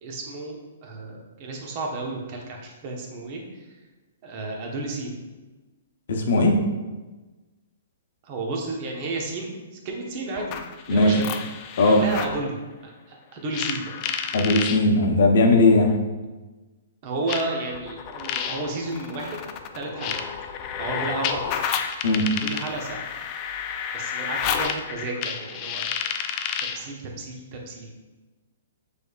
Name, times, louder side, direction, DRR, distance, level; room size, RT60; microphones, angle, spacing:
voice 1, 0.0-3.7 4.2-5.2 8.2-9.5 9.8-11.3 11.8-14.0 17.0-20.2 20.8-21.6 22.4-23.1 23.9-25.9 26.6-27.9, right 2 dB, 40° right, 0 dB, 1.0 m, -32 dB
voice 2, 6.1-6.5 10.9-11.1 11.8-12.0 14.3-15.9 22.0-22.3, left 2 dB, 65° left, 3 dB, 0.8 m, -18 dB
sound 1, 10.4-12.4 13.5-14.8 15.9-16.0 17.3-26.9, left 7 dB, 35° left, 0.4 m, -30 dB
6.1 x 3.4 x 2.3 m, 1.2 s
hypercardioid pair, 135°, 0 cm